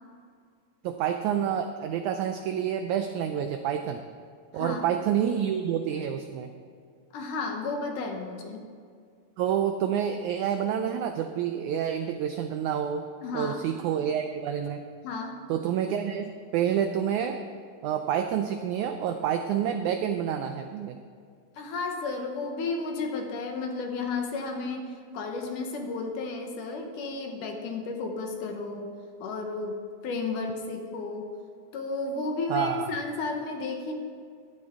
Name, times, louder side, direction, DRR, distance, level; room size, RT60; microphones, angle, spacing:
voice 1, 0.8-4.0 4.5-6.5 9.4-13.0 13.3-14.8 15.5-17.4 17.8-21.0 32.5-32.9, right 9 dB, 85° right, 6 dB, 1.7 m, -28 dB
voice 2, 4.5-4.9 7.1-8.6 13.2-13.6 15.0-15.4 21.6-28.9 29.2-31.3 31.7-33.9, left 3 dB, 70° left, 3 dB, 2.5 m, -33 dB
15.0 x 12.0 x 3.6 m, 2.2 s
omnidirectional pair, 4.1 m